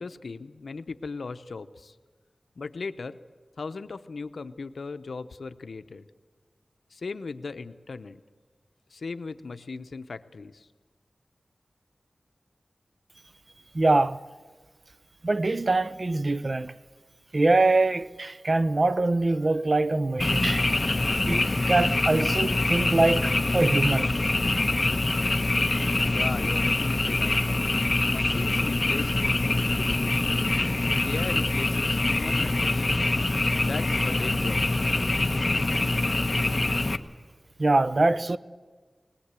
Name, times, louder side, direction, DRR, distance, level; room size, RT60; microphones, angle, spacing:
voice 1, 0.0-1.9 2.6-3.2 3.6-6.1 6.9-8.2 8.9-10.7 26.1-27.4 28.1-30.5 31.0-33.1 33.6-34.7, left 4 dB, 85° left, 0.7 m, -37 dB
voice 2, 13.7-14.2 15.2-16.7 17.3-20.8 21.3-24.2 37.6-38.4, right 2 dB, 45° right, 0.6 m, -24 dB
Frog, 20.2-37.0, left 2 dB, 35° left, 0.9 m, -25 dB
20.0 x 20.0 x 8.3 m
wide cardioid pair, 80°, 0 cm